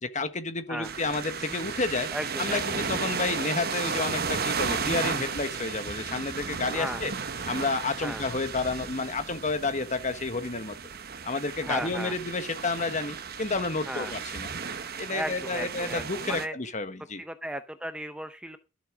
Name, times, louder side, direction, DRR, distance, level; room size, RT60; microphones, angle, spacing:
voice 1, 0.0-2.1 2.4-7.1 7.5-10.8 11.2-14.5 15.0-17.2, left 3 dB, 35° left, 1.4 m, -30 dB
sound 1, 0.8-16.5, right 5 dB, 45° right, 1.1 m, -34 dB
voice 2, 2.1-2.8 6.7-7.0 8.0-8.2 11.6-12.2 13.9-14.1 15.1-16.5 17.2-18.6, right 1 dB, 5° right, 0.6 m, -35 dB
13.0 x 7.4 x 6.1 m
head